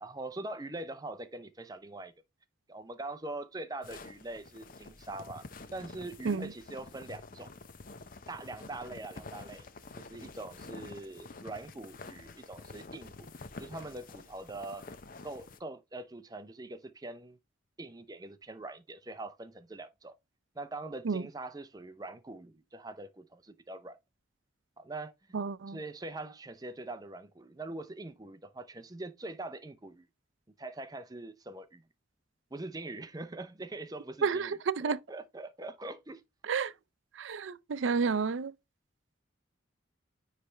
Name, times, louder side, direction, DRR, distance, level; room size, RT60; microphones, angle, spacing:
voice 1, 0.0-2.1 2.7-5.4 5.7-7.5 8.3-9.7 10.0-13.3 13.6-14.8 15.2-17.4 17.8-20.2 20.6-24.0 24.8-25.4 25.7-30.0 30.6-31.8 32.5-36.2, right 2 dB, 20° right, 0.5 m, -43 dB
sound 1, 3.8-15.6, left 3 dB, 45° left, 0.7 m, -48 dB
voice 2, 25.3-25.8 34.2-35.0 36.4-36.7 37.2-38.5, right 5 dB, 85° right, 0.5 m, -31 dB
9.6 x 3.3 x 3.2 m
head